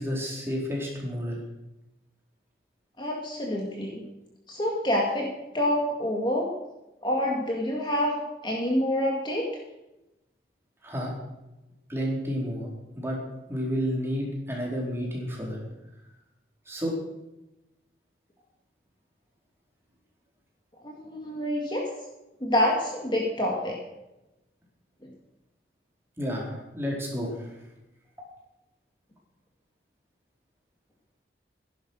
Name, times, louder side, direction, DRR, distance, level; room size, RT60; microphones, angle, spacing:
voice 1, 0.0-1.4 10.8-11.1 11.9-12.7 13.0-13.2 13.5-15.6 16.7-16.9 26.2-27.5, equal, 15° right, -3 dB, 4.3 m, -30 dB
voice 2, 3.0-4.0 4.5-5.3 5.5-6.5 7.0-9.5 20.8-21.9 22.4-23.8, left 1 dB, 25° left, -1 dB, 2.2 m, -27 dB
15.5 x 11.0 x 6.4 m, 0.96 s
head